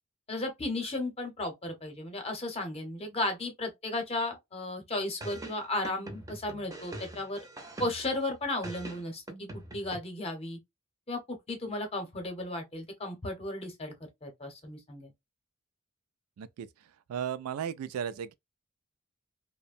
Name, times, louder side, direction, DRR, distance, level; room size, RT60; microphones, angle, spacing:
voice 1, 0.3-7.4 7.8-9.2 9.7-10.6 11.1-15.1, left 2 dB, 30° left, 0.8 m, -34 dB
sound 1, 5.2-8.2 8.6-10.0, right 1 dB, 15° right, 0.6 m, -43 dB
voice 2, 16.4-16.7 17.1-18.3, right 8 dB, 85° right, 0.3 m, -35 dB
2.7 x 2.1 x 2.4 m
head